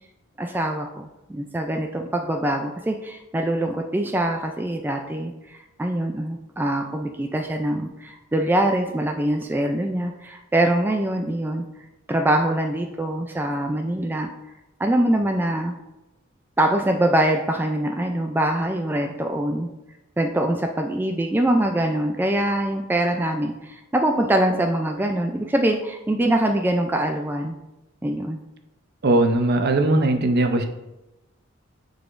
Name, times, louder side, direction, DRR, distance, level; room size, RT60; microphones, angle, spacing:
voice 1, 0.4-11.6 12.1-14.3 14.8-15.7 16.6-19.7 20.2-27.6 28.0-28.4, right 1 dB, 10° right, 3 dB, 0.3 m, -23 dB
voice 2, 29.0-30.7, right 2 dB, 50° right, 6 dB, 0.6 m, -19 dB
9.5 x 4.0 x 2.5 m, 0.98 s
head